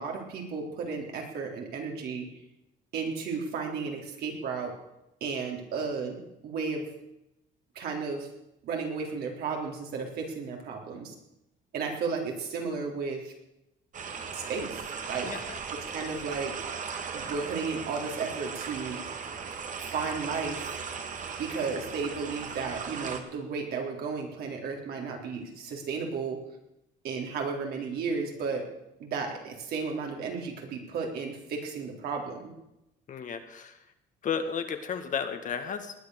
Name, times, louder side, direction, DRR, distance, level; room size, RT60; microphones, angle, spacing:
voice 1, 0.0-2.3 2.9-4.8 5.2-6.9 7.8-8.3 8.6-11.2 11.7-13.3 14.3-14.8 15.1-15.4 15.7-16.5 17.1-19.0 19.8-20.7 21.4-26.4 27.0-28.7 29.0-32.5, right 5 dB, 70° right, 1 dB, 3.8 m, -34 dB
sound 1, 13.9-23.2, right 6 dB, 50° right, 1.9 m, -37 dB
voice 2, 33.1-33.7 34.2-35.9, left 6 dB, 50° left, 7 dB, 1.8 m, -33 dB
19.5 x 9.6 x 6.5 m, 0.88 s
cardioid pair, 110°, 17 cm